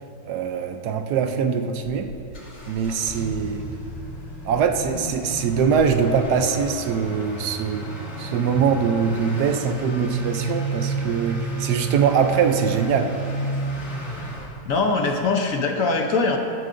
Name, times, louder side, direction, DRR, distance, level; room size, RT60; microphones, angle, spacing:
voice 1, 0.3-2.1 2.7-3.7 4.4-7.9 8.2-13.2, right 6 dB, 75° right, 7 dB, 1.1 m, -22 dB
Motor vehicle (road) / Accelerating revving vroom, 1.9-14.5, right 3 dB, 75° left, 2.8 m, -32 dB
voice 2, 14.6-16.4, left 3 dB, 60° left, 3 dB, 1.0 m, -22 dB
14.0 x 12.0 x 2.5 m, 2.6 s
omnidirectional pair, 1.9 m